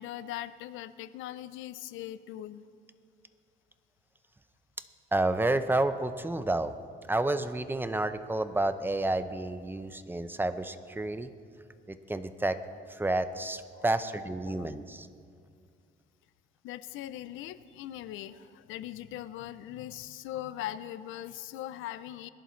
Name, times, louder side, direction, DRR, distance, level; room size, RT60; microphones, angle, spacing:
voice 1, 0.0-2.7 13.7-13.8 14.5-14.7 16.6-22.3, left 12 dB, 90° left, 15 dB, 0.5 m, -40 dB
voice 2, 5.1-6.7 7.1-11.3 11.9-12.6 12.9-15.1, right 2 dB, 10° right, 11 dB, 0.6 m, -30 dB
21.0 x 11.0 x 3.1 m, 2.2 s
cardioid pair, 90°, 20 cm